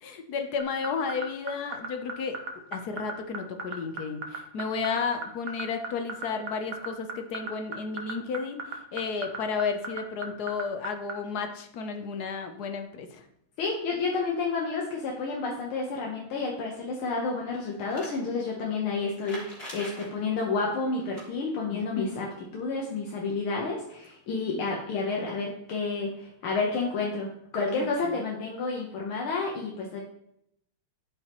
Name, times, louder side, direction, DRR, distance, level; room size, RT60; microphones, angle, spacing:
voice 1, 0.0-8.6 8.9-13.2 21.7-22.2 24.3-24.6 27.8-28.2, left 5 dB, 60° left, 7 dB, 1.1 m, -33 dB
sound 1, 0.6-11.1, right 5 dB, 70° right, 1.8 m, -34 dB
voice 2, 13.6-22.3 22.5-30.0, left 4 dB, 80° left, -1 dB, 1.9 m, -30 dB
sound 2, 17.8-18.2 19.2-20.1 21.0-21.2 23.8-23.9 24.0-24.1 25.3-25.4, equal, 30° left, 2.6 m, -42 dB
11.5 x 5.6 x 3.0 m, 0.73 s
omnidirectional pair, 2.3 m